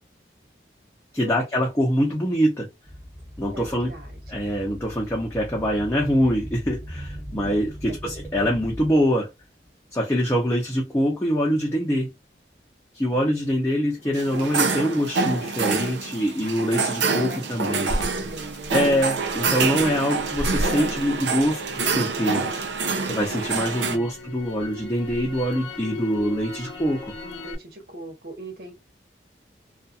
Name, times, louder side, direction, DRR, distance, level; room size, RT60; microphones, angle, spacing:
voice 1, 1.1-2.7 3.4-3.9 4.3-9.3 9.9-12.1 12.9-17.9 18.7-22.6 23.0-27.1, equal, 15° left, 0.6 m, -24 dB
sound 1, 2.8-9.1 9.6-9.8 10.7-10.8 11.6-11.7, equal, 25° right, 1.2 m, -39 dB
voice 2, 3.5-4.5 7.9-8.0 13.1-13.3 14.0-14.2 17.2-18.8 23.5-24.3 27.1-28.7, right 1 dB, 55° right, 0.9 m, -40 dB
sound 2, 14.1-24.0, right 4 dB, 85° right, 0.5 m, -26 dB
Crackle, 17.9-22.0 22.4-27.5, left 1 dB, 75° left, 0.8 m, -34 dB
2.7 x 2.4 x 2.3 m
head